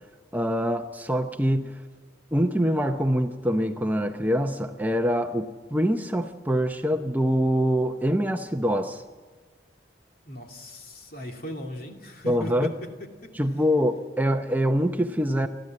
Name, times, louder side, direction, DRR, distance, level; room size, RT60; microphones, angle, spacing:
voice 1, 0.3-1.7 2.3-9.0 12.3-12.7 13.4-15.5, equal, 10° right, 6 dB, 0.7 m, -24 dB
voice 2, 10.3-13.3, equal, 55° left, 2 dB, 2.6 m, -38 dB
29.0 x 12.0 x 7.6 m, 1.5 s
head